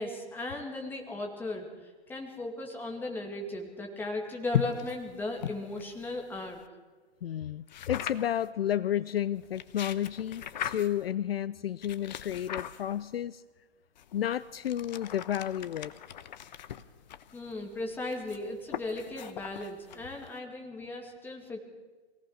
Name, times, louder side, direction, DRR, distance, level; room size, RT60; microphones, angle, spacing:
voice 1, 0.0-6.6 17.3-21.6, left 2 dB, 5° left, 1 dB, 2.2 m, -37 dB
sound 1, 4.5-6.7 7.7-8.5 9.4-11.1 11.8-13.2 14.0-20.4, left 10 dB, 40° left, 1.0 m, -39 dB
voice 2, 7.2-13.4 14.1-15.9, left 10 dB, 60° left, 18 dB, 0.5 m, -32 dB
23.0 x 17.5 x 6.4 m, 1.3 s
hypercardioid pair, 155°, 34 cm